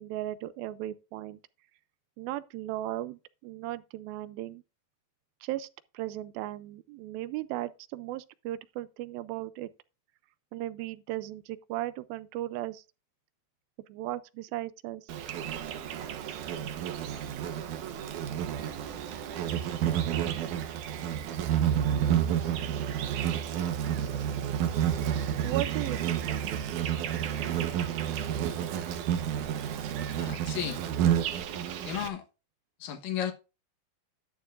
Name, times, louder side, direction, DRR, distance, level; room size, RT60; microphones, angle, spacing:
voice 1, 0.0-1.4 2.2-4.6 5.4-5.7 5.9-9.7 10.5-12.8 13.9-15.1 25.4-26.8, right 14 dB, 85° right, 2.4 m, -36 dB
Insect, 15.1-32.1, right 10 dB, 65° right, 2.3 m, -30 dB
voice 2, 30.2-30.8 31.8-32.2 32.8-33.3, left 10 dB, 70° left, 2.7 m, -33 dB
11.5 x 10.0 x 2.5 m
omnidirectional pair, 4.2 m